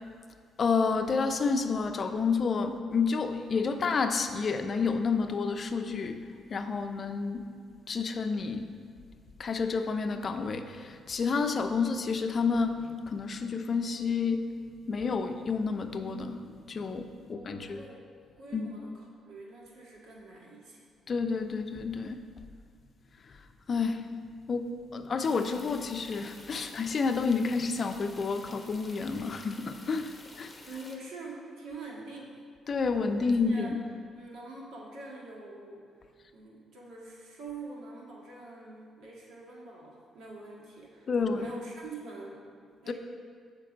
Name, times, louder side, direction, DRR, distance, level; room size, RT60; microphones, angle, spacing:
voice 1, 0.6-7.5 7.9-8.7 9.4-14.5 14.9-17.8 18.5-18.7 21.1-22.2 23.7-24.1 24.5-30.5 32.7-33.8 41.1-41.5, left 4 dB, 45° left, 7 dB, 0.5 m, -30 dB
voice 2, 17.2-18.0 18.4-20.9 30.7-32.4 33.5-33.8 34.1-35.9 36.3-42.9, right 2 dB, 75° right, -3 dB, 1.7 m, -45 dB
sound 1, 25.2-31.0, left 2 dB, 25° left, 1.0 m, -51 dB
7.6 x 5.2 x 5.2 m, 2.1 s
cardioid pair, 90°, 0 cm